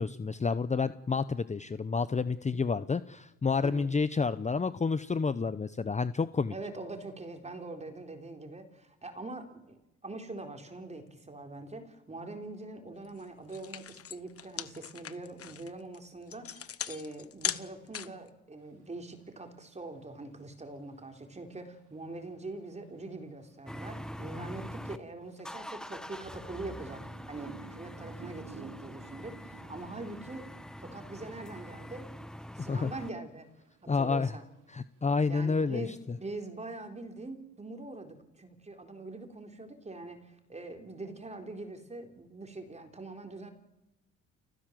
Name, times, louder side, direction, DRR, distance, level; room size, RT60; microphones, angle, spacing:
voice 1, 0.0-6.5 32.6-32.9 33.9-34.3 34.7-35.9, left 4 dB, 25° left, 13 dB, 0.8 m, -29 dB
voice 2, 6.5-27.0 27.3-30.5 30.8-32.1 32.5-33.5 33.8-34.4 35.3-43.5, right 2 dB, 20° right, 5 dB, 4.2 m, -43 dB
sound 1, 13.1-13.2 13.5-18.3, left 9 dB, 50° left, 1.2 m, -38 dB
sound 2, 18.6-36.3, right 6 dB, 80° right, 4.8 m, -57 dB
sound 3, 23.7-25.0 25.4-33.1, equal, ahead, 1.1 m, -44 dB
29.0 x 15.5 x 7.7 m, 0.99 s
cardioid pair, 90°, 30 cm